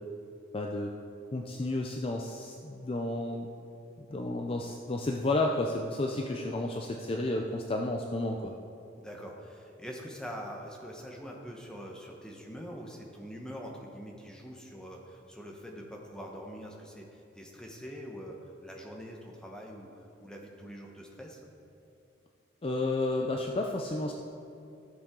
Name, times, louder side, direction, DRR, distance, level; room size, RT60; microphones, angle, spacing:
voice 1, 0.5-0.9 1.3-3.5 4.0-8.5 22.6-24.1, left 2 dB, 30° left, 2 dB, 0.4 m, -31 dB
voice 2, 9.0-21.5, equal, 5° left, 0 dB, 1.0 m, -44 dB
13.5 x 7.3 x 3.7 m, 2.8 s
head